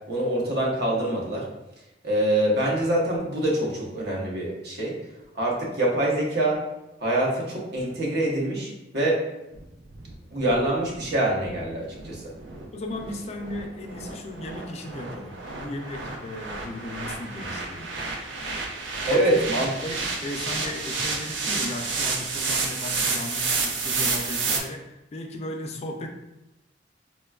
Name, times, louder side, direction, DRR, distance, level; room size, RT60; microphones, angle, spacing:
voice 1, 0.1-1.5 2.0-5.0 5.3-6.6 7.0-9.2 10.3-12.2 19.1-19.7, right 1 dB, 65° right, -3 dB, 0.8 m, -25 dB
sound 1, 9.5-24.6, right 4 dB, 80° right, 0.5 m, -31 dB
voice 2, 12.7-17.9 19.1-19.4 19.8-26.1, left 1 dB, 35° left, 3 dB, 0.3 m, -36 dB
4.1 x 2.2 x 2.3 m, 0.94 s
head